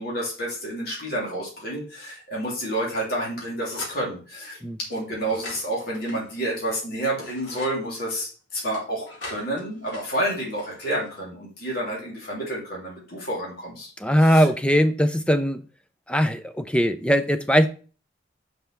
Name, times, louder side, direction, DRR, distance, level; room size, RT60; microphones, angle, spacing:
voice 1, 0.0-14.5, right 1 dB, 50° left, 3.2 m, -30 dB
sound 1, 3.7-4.0 4.9-6.7 7.1-7.8 8.7-11.2, left 2 dB, 65° left, 2.7 m, -43 dB
voice 2, 14.0-15.6 16.1-17.7, equal, 5° left, 0.5 m, -20 dB
5.7 x 5.6 x 6.0 m
head